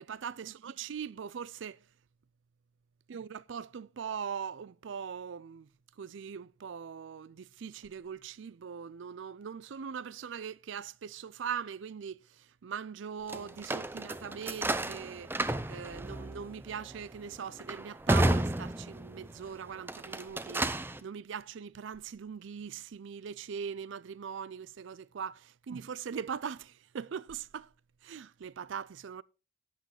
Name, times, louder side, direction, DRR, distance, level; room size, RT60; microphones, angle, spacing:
voice 1, 0.0-1.8 3.1-5.7 6.0-27.7 28.0-29.2, right 7 dB, 75° right, 0.4 m, -41 dB
sound 1, 13.3-19.3 19.8-21.0, right 1 dB, 10° right, 0.5 m, -32 dB
12.0 x 8.3 x 3.2 m
head